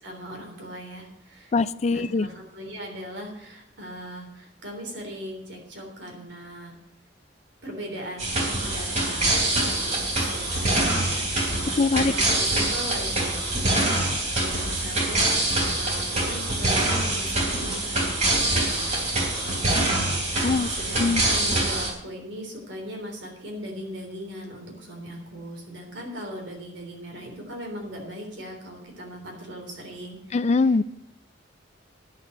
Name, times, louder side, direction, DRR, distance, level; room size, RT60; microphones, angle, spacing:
voice 1, 0.0-1.5 1.9-6.7 7.6-9.3 9.8-11.8 12.1-30.4, equal, 70° right, 1 dB, 3.5 m, -39 dB
voice 2, 1.5-2.3 11.8-12.1 20.4-20.7 21.0-21.2 30.3-30.8, left 3 dB, 35° left, 18 dB, 0.4 m, -22 dB
sound 1, 8.2-21.9, right 2 dB, 40° right, 3.3 m, -25 dB
10.5 x 7.5 x 8.0 m, 0.78 s
head